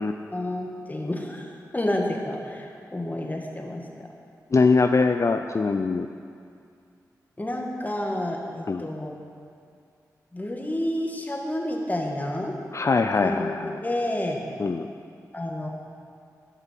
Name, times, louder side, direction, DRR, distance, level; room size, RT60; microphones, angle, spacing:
voice 1, 0.0-4.1 7.4-9.1 10.3-12.5 13.2-14.4 15.3-15.7, left 1 dB, 25° left, 0 dB, 1.9 m, -30 dB
voice 2, 4.5-6.1 8.7-8.9 12.7-13.8 14.6-14.9, left 4 dB, 45° left, 7 dB, 0.4 m, -22 dB
11.5 x 5.7 x 7.6 m, 2.3 s
cardioid pair, 40°, 7 cm